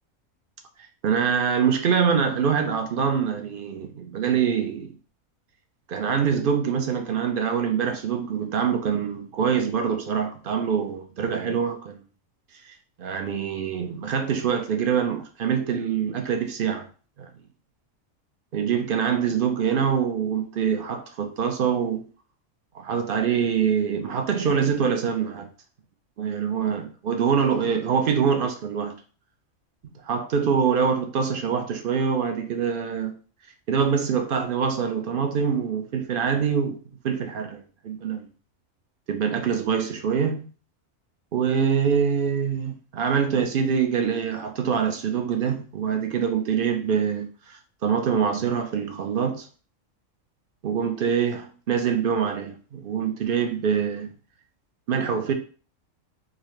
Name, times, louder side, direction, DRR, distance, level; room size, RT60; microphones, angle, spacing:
voice 1, 1.0-4.9 5.9-12.0 13.0-16.9 17.2-17.3 18.5-22.1 22.7-25.5 26.2-29.0 30.1-33.2 33.7-36.8 37.0-38.3 39.1-40.5 41.3-49.5 50.6-54.1 54.9-55.3, right 7 dB, 60° right, 0.6 m, -24 dB
3.9 x 2.8 x 3.1 m
omnidirectional pair, 1.4 m